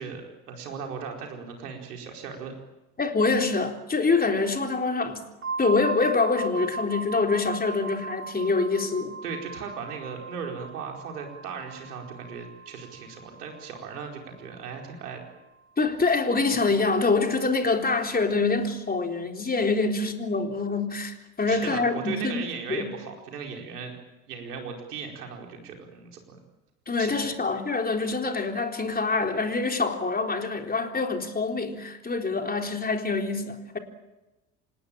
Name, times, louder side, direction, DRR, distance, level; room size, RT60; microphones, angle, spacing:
voice 1, 0.0-2.5 9.2-15.2 21.5-24.0 24.3-26.4 27.0-27.3, right 6 dB, 75° right, 4.7 m, -37 dB
voice 2, 3.0-5.2 5.6-9.1 15.8-22.9 26.9-33.8, left 3 dB, 20° left, 3.9 m, -25 dB
sound 1, 5.4-15.0, right 4 dB, 25° right, 1.4 m, -38 dB
26.5 x 19.0 x 8.9 m
figure-of-eight pair, 60°, 47 cm